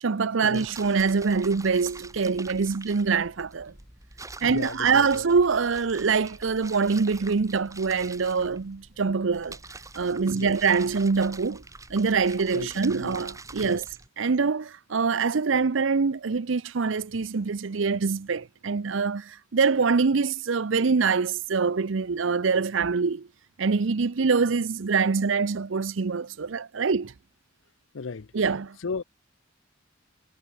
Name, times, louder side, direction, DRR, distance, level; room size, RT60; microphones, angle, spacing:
voice 1, 0.0-3.7 4.4-9.6 10.0-11.6 11.9-13.8 14.2-23.3 23.6-27.1 28.3-28.8, right 5 dB, 75° right, 0.6 m, -24 dB
sound 1, 0.5-14.1, right 3 dB, 15° right, 3.6 m, -45 dB
voice 2, 4.4-5.3 10.2-10.6 12.5-13.2 13.6-13.8 27.9-28.3 28.8-29.0, left 4 dB, 75° left, 0.6 m, -36 dB
head